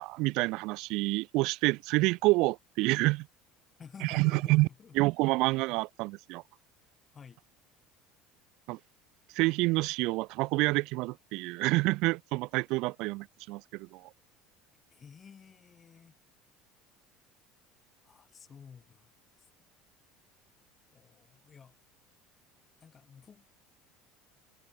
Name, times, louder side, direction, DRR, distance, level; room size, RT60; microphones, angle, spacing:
voice 1, 0.0-3.3 4.0-4.7 4.9-6.4 8.7-8.8 9.3-14.1, right 23 dB, 70° right, 1.6 m, -28 dB
voice 2, 3.8-5.0 7.1-7.4 14.9-16.1 18.0-19.5 20.9-21.8 22.8-23.4, left 6 dB, 30° left, 6.0 m, -52 dB
supercardioid pair, 100°, 0 cm